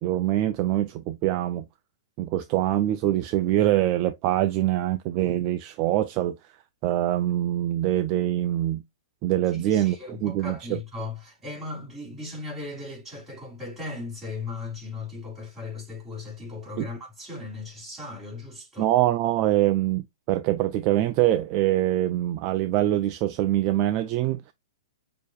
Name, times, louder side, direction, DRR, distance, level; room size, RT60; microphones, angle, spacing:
voice 1, 0.0-1.7 2.2-6.4 6.8-8.8 9.2-10.0 10.2-10.8 16.8-16.9 18.8-24.5, right 14 dB, 40° right, 0.4 m, -24 dB
voice 2, 9.5-18.9, left 3 dB, 10° right, 3.4 m, -37 dB
6.4 x 2.8 x 2.4 m
hypercardioid pair, 130°, 2 cm